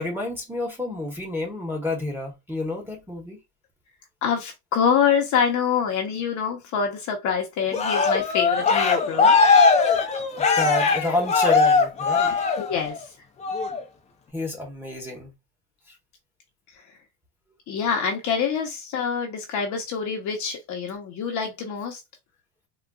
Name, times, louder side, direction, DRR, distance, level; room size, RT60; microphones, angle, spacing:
voice 1, 0.0-3.4 9.9-12.4 14.3-15.3, left 2 dB, 5° right, 0.9 m, -30 dB
voice 2, 4.2-9.4 12.3-13.1 16.7-16.8 17.7-22.0, left 7 dB, 40° left, 0.8 m, -26 dB
Cheering, 7.7-13.0 13.4-13.8, left 4 dB, 15° left, 0.4 m, -20 dB
3.9 x 2.2 x 2.2 m
cardioid pair, 140°, 46 cm